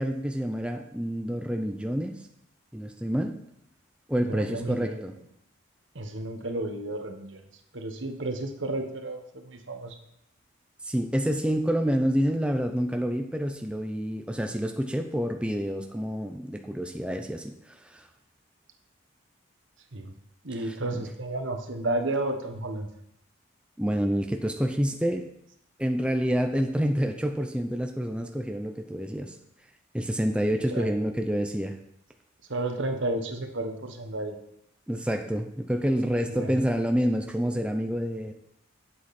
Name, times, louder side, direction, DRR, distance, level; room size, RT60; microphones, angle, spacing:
voice 1, 0.0-2.3 2.7-3.4 4.1-5.1 10.8-18.1 20.6-21.0 23.8-25.3 25.8-29.4 29.9-31.7 34.9-38.3, equal, 5° right, 4 dB, 0.5 m, -28 dB
voice 2, 4.2-5.0 5.9-7.5 7.7-10.0 19.9-20.1 20.4-22.9 30.7-30.9 32.5-34.3 36.3-36.6, right 2 dB, 75° right, 5 dB, 1.3 m, -32 dB
11.5 x 7.8 x 4.3 m, 0.76 s
head